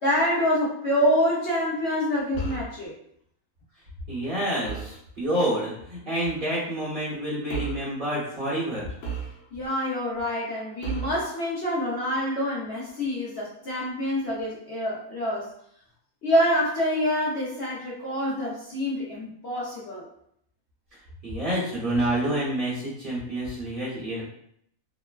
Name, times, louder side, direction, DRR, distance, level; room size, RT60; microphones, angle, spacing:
voice 1, 0.0-2.9 9.5-15.5 16.2-20.1, equal, 60° left, -6 dB, 0.8 m, -26 dB
sound 1, 2.4-2.8 4.6-5.0 6.2-6.5 7.5-7.9 9.0-9.7 10.8-11.2, right 6 dB, 85° left, 1.2 m, -34 dB
voice 2, 4.1-8.9 21.2-24.2, right 1 dB, 40° right, -8 dB, 1.0 m, -28 dB
3.1 x 2.0 x 2.2 m, 0.70 s
omnidirectional pair, 1.5 m